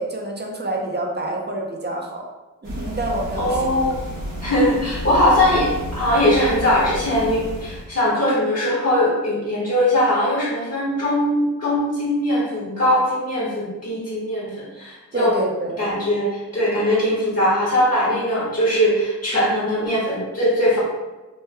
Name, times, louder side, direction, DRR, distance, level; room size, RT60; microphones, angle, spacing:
voice 1, 0.0-2.3 2.6-3.7 15.1-15.7, right 1 dB, 30° right, 0 dB, 0.6 m, -27 dB
sound 1, 2.6-7.9, equal, 75° right, 1.0 m, -31 dB
voice 2, 3.4-4.0 4.4-15.3 15.8-20.8, left 1 dB, 50° left, -7 dB, 1.2 m, -20 dB
3.2 x 2.2 x 3.3 m, 1.1 s
wide cardioid pair, 75°, 32 cm